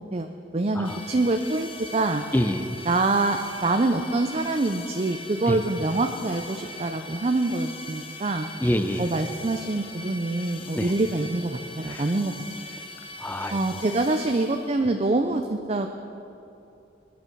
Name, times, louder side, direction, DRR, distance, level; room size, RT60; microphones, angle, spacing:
voice 1, 0.1-2.2 2.9-8.5 9.0-12.3 13.5-15.9, right 2 dB, 35° right, 6 dB, 0.5 m, -25 dB
sound 1, 0.8-14.9, left 2 dB, 30° left, 1.0 m, -41 dB
voice 2, 2.3-2.7 5.5-5.6 8.6-9.1 10.8-10.9 11.9-12.0 13.2-13.6, left 1 dB, 10° left, 8 dB, 0.6 m, -26 dB
21.0 x 9.6 x 4.6 m, 2.8 s
head